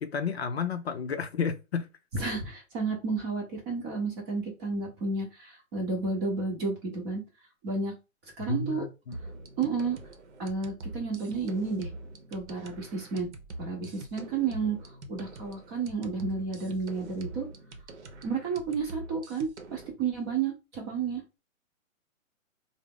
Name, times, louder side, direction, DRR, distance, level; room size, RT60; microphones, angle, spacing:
voice 1, 0.0-1.9 8.5-9.2, left 5 dB, 50° left, 0.5 m, -31 dB
voice 2, 2.2-7.2 7.6-7.9 8.4-8.8 9.6-10.0 10.4-11.9 12.3-13.3 13.6-17.5 18.2-21.2, right 4 dB, 20° right, 0.8 m, -31 dB
sound 1, 9.1-19.9, right 2 dB, 55° right, 0.8 m, -44 dB
3.4 x 2.0 x 3.6 m
hypercardioid pair, 150°, 42 cm